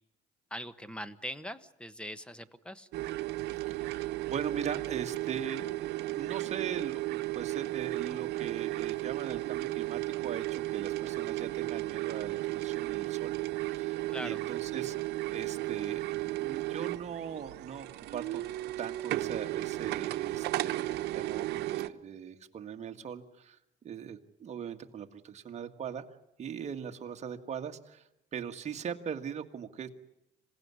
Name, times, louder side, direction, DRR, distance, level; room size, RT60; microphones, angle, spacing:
voice 1, 0.5-2.9 14.1-14.4, equal, 5° left, 14 dB, 1.2 m, -41 dB
sound 1, 2.9-21.9, right 18 dB, 80° right, 1.0 m, -34 dB
voice 2, 3.7-18.4 18.8-23.6 23.8-26.0 26.4-29.9, right 7 dB, 40° right, 4 dB, 1.9 m, -40 dB
27.0 x 17.0 x 9.8 m, 0.87 s
cardioid pair, 110°, 17 cm